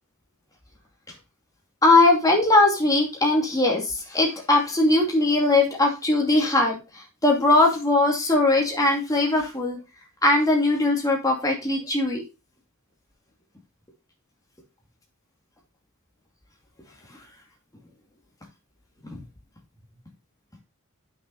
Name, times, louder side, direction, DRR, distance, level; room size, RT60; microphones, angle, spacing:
voice 1, 1.8-9.8 10.2-12.2 19.0-19.2, left 2 dB, 15° left, 0 dB, 2.5 m, -20 dB
9.5 x 6.3 x 4.0 m, 0.28 s
head